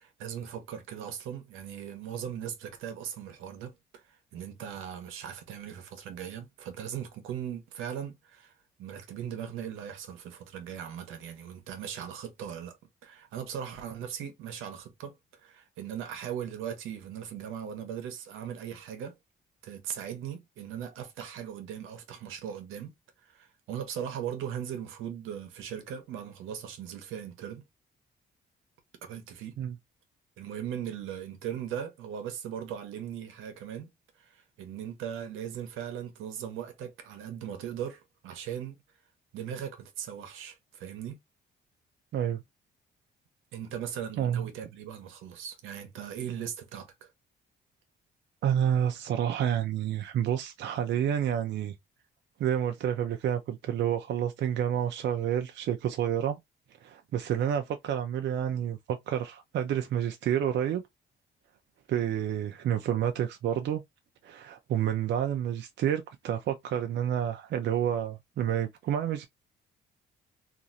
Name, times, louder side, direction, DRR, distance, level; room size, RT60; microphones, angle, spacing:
voice 1, 0.0-8.5 8.8-12.8 13.0-19.2 19.6-22.9 23.2-27.6 29.0-29.6 30.4-33.9 34.2-38.8 39.3-41.2 43.5-47.1, right 9 dB, 90° right, 0.9 m, -39 dB
voice 2, 48.4-51.7 52.4-56.4 56.8-60.8 61.9-63.8 64.2-69.3, right 9 dB, 65° right, 0.5 m, -29 dB
2.9 x 2.4 x 2.5 m
cardioid pair, 90°, 20 cm